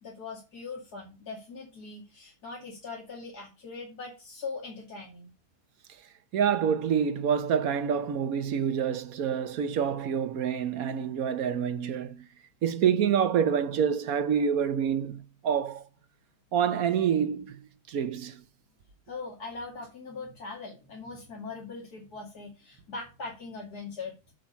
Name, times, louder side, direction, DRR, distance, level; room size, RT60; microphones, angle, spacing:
voice 1, 0.0-5.3 19.1-24.3, left 4 dB, 75° left, 3.0 m, -41 dB
voice 2, 6.3-12.3 12.6-15.8 16.5-17.6 17.9-18.4, right 8 dB, 65° right, 1.2 m, -27 dB
7.7 x 6.4 x 5.7 m
omnidirectional pair, 1.7 m